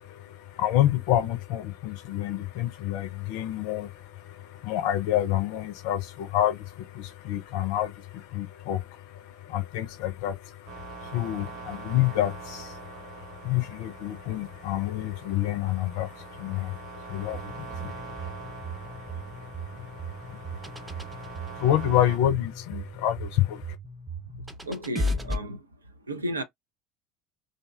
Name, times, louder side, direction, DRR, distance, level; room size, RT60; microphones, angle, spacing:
voice 1, 0.0-23.8, left 12 dB, 60° left, 0.4 m, -29 dB
sound 1, 10.7-22.2, right 5 dB, 60° right, 0.9 m, -44 dB
sound 2, 17.3-25.4, equal, 15° right, 0.6 m, -36 dB
voice 2, 24.3-25.7 26.1-26.4, right 1 dB, 85° right, 0.4 m, -33 dB
2.6 x 2.1 x 2.3 m
figure-of-eight pair, 65°, 0 cm